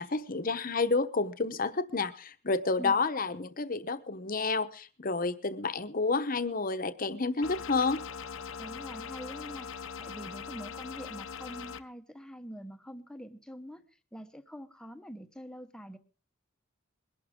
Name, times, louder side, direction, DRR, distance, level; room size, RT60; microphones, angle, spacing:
voice 1, 0.0-8.0, left 3 dB, 45° left, 10 dB, 1.0 m, -30 dB
sound 1, 7.4-11.8, left 6 dB, 75° left, 0.8 m, -41 dB
voice 2, 8.6-13.8 14.1-16.0, equal, 5° left, 8 dB, 1.0 m, -45 dB
22.0 x 11.5 x 3.7 m, 0.36 s
head